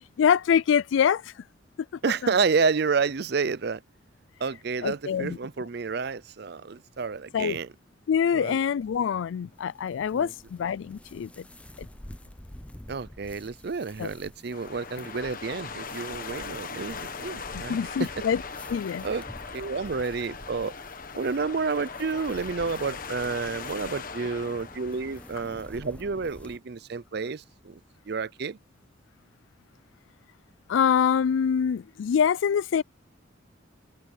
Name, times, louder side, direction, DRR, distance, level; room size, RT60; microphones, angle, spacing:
voice 1, 0.2-1.2 4.8-5.4 7.3-7.6 8.1-11.4 11.8-11.9 14.0-14.1 17.5-18.4 18.7-19.1 30.7-32.8, left 7 dB, 75° left, 0.3 m, -25 dB
voice 2, 2.0-3.8 4.4-7.7 8.3-8.6 10.1-10.3 12.9-18.1 19.0-19.2 19.5-20.7 21.1-27.8 28.1-28.6, right 4 dB, 55° right, 0.5 m, -30 dB
sound 1, 8.8-26.6, left 1 dB, 5° left, 0.6 m, -48 dB
sound 2, 14.5-25.7, left 5 dB, 45° left, 1.4 m, -40 dB
head